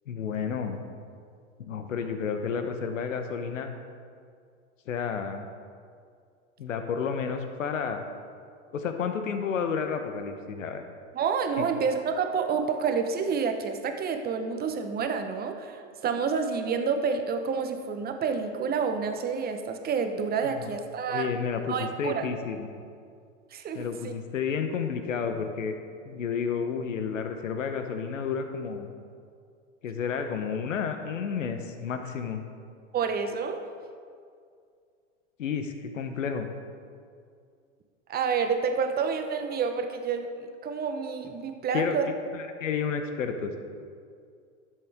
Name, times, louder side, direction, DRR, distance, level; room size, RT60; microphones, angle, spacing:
voice 1, 0.1-0.8 1.6-3.7 4.9-5.5 6.6-8.0 8.7-10.8 11.6-11.7 20.4-20.7 21.1-22.7 23.7-25.8 26.0-28.9 29.8-32.4 35.4-36.5 41.7-42.0 42.3-43.6, left 6 dB, 90° left, 7 dB, 0.9 m, -31 dB
voice 2, 11.1-21.3 21.7-22.3 23.5-24.1 32.9-33.6 38.1-40.3 40.6-42.1, right 5 dB, 25° right, 6 dB, 0.9 m, -29 dB
11.5 x 7.6 x 3.5 m, 2.3 s
hypercardioid pair, 105°, 38 cm